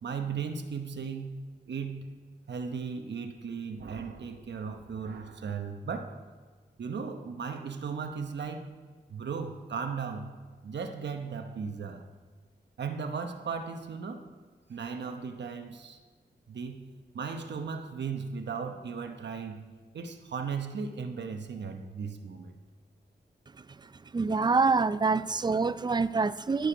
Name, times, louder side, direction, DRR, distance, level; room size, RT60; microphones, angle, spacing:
voice 1, 0.0-1.4 1.7-2.1 2.5-6.2 6.8-8.7 9.1-10.3 10.6-12.1 12.8-14.3 14.7-16.0 16.5-16.8 17.1-19.6 19.9-22.6, right 5 dB, 85° right, 6 dB, 1.0 m, -36 dB
voice 2, 24.1-26.7, right 4 dB, 25° right, 15 dB, 0.4 m, -26 dB
17.5 x 6.4 x 5.1 m, 1.4 s
wide cardioid pair, 75°, 18 cm